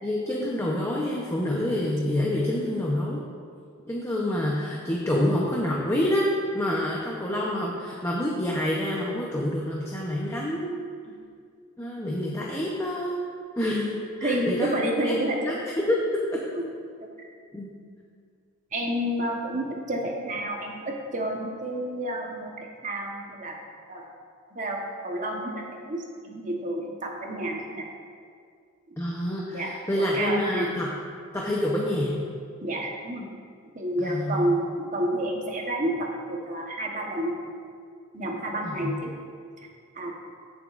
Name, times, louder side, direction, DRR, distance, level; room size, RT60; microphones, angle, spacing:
voice 1, 0.0-3.2 3.9-10.7 11.8-13.2 13.6-14.7 15.0-15.1 15.4-16.1 16.3-16.4 17.5-17.7 29.0-30.9 31.3-32.2 34.0-34.5 38.6-39.0, left 1 dB, 15° left, -3 dB, 0.8 m, -27 dB
voice 2, 14.2-15.4 16.5-16.7 17.2-17.3 18.7-23.5 23.9-24.1 24.5-27.9 29.5-30.7 32.6-33.3 33.7-37.3 38.1-39.1 40.0-40.2, right 1 dB, 40° right, 0 dB, 1.1 m, -30 dB
15.5 x 7.2 x 2.5 m, 2.2 s
head